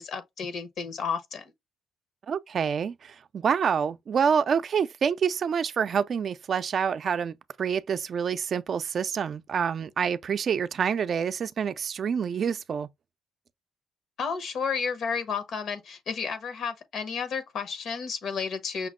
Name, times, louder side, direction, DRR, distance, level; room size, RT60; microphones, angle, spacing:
voice 1, 0.0-1.5 14.2-18.9, left 5 dB, 65° left, 1.1 m, -32 dB
voice 2, 2.3-12.9, right 7 dB, 55° right, 0.4 m, -27 dB
5.8 x 2.1 x 3.7 m
cardioid pair, 90°, 0 cm